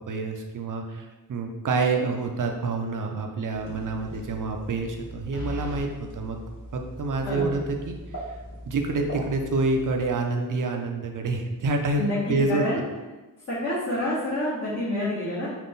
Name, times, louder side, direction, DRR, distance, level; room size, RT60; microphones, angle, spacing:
voice 1, 0.1-5.9 6.2-6.4 6.7-8.0 8.7-12.0 12.3-12.8, right 3 dB, 60° right, 3 dB, 0.6 m, -27 dB
sound 1, 3.5-10.2, equal, 60° left, 1.3 m, -41 dB
sound 2, 5.3-5.9, left 2 dB, 10° left, 1.0 m, -35 dB
voice 2, 7.2-7.6 12.0-12.8 13.5-15.5, left 1 dB, 35° left, -9 dB, 1.1 m, -28 dB
3.7 x 2.5 x 3.9 m, 1.2 s
wide cardioid pair, 95°, 36 cm